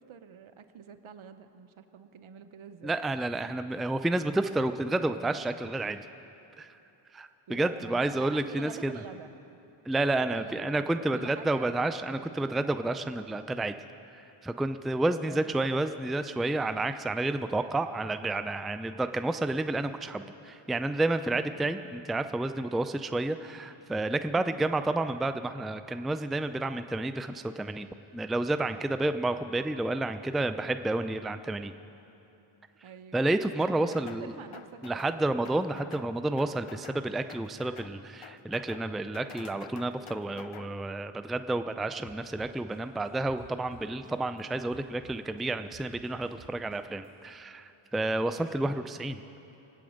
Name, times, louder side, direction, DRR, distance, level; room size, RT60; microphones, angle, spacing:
voice 1, 0.0-3.0 7.5-9.3 10.1-12.6 13.0-13.1 15.3-15.7 21.3-22.4 24.3-24.8 29.0-29.3 32.8-33.3 33.8-35.5 48.3-49.1, right 7 dB, 75° right, 10 dB, 0.9 m, -48 dB
voice 2, 2.8-6.1 6.6-6.7 7.1-8.9 9.9-13.7 14.4-31.7 33.1-34.3 34.8-49.2, right 2 dB, ahead, 10 dB, 0.4 m, -30 dB
sound 1, 33.6-34.2 34.5-35.2 35.4-36.1 36.4-37.0 37.3-37.9 38.2-38.9 39.1-40.7, left 8 dB, 80° left, 0.8 m, -48 dB
sound 2, 42.0-44.4 44.7-47.1, right 5 dB, 45° right, 1.2 m, -53 dB
22.0 x 8.8 x 6.5 m, 2.9 s
cardioid pair, 60°, 48 cm